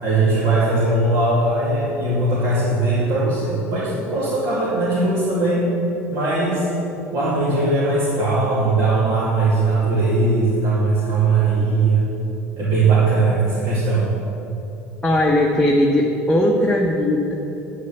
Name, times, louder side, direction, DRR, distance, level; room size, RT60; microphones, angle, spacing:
voice 1, 0.0-5.6 6.1-6.7 7.1-12.1 12.6-14.1, right 3 dB, 50° right, -8 dB, 2.6 m, -19 dB
voice 2, 15.0-17.3, left 1 dB, 10° left, -1 dB, 1.1 m, -18 dB
9.7 x 8.7 x 6.9 m, 2.9 s
figure-of-eight pair, 65°, 8 cm